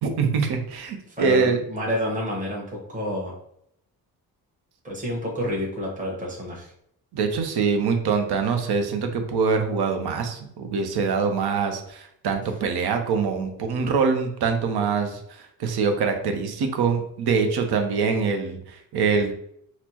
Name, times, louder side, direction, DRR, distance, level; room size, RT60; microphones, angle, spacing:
voice 1, 0.0-1.6 7.1-19.3, right 5 dB, 80° right, 5 dB, 0.7 m, -24 dB
voice 2, 1.2-3.3 4.8-6.7, equal, 20° right, -4 dB, 1.2 m, -29 dB
4.2 x 2.0 x 2.8 m, 0.72 s
cardioid pair, 75°, 39 cm